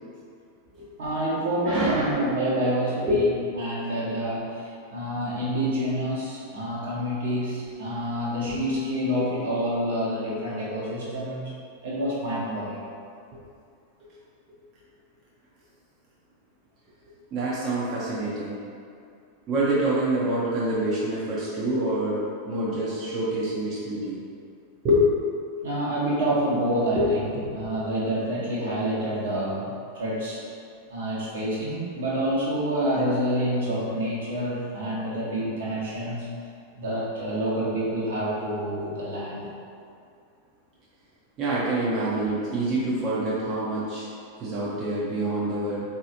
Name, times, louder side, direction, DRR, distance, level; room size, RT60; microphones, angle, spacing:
voice 1, 1.0-3.3 3.6-4.5 4.9-11.4 11.8-12.8 25.6-29.7 29.9-30.4 30.9-36.3 36.7-39.5, right 1 dB, 65° right, -8 dB, 1.1 m, -27 dB
voice 2, 1.7-2.1 3.1-3.2 17.3-18.6 19.5-24.2 24.8-25.1 26.9-27.8 41.4-44.1 44.4-45.8, right 1 dB, 35° right, -8 dB, 0.7 m, -26 dB
3.9 x 2.7 x 2.7 m, 2.4 s
figure-of-eight pair, 90°, 0 cm